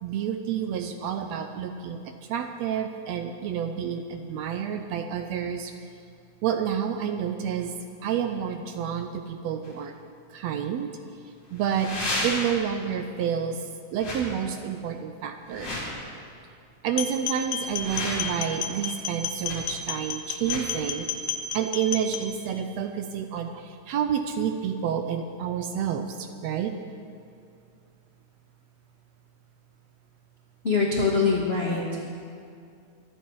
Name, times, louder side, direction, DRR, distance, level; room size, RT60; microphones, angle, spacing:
voice 1, 0.0-2.0 2.3-5.7 6.4-9.9 10.3-10.9 11.5-11.9 12.2-13.6 13.9-15.7 16.8-21.3 21.5-26.7, right 8 dB, 80° right, 6 dB, 1.7 m, -29 dB
sound 1, 9.6-9.7 11.6-12.7 14.0-14.2 15.4-16.0 17.5-18.5 19.4-19.6 20.4-20.7, left 1 dB, 35° left, 3.6 m, -32 dB
sound 2, 16.9-22.3, left 7 dB, 75° left, 2.0 m, -32 dB
voice 2, 30.6-31.8, left 4 dB, 55° left, -3 dB, 0.6 m, -23 dB
24.0 x 9.1 x 4.7 m, 2.4 s
omnidirectional pair, 3.4 m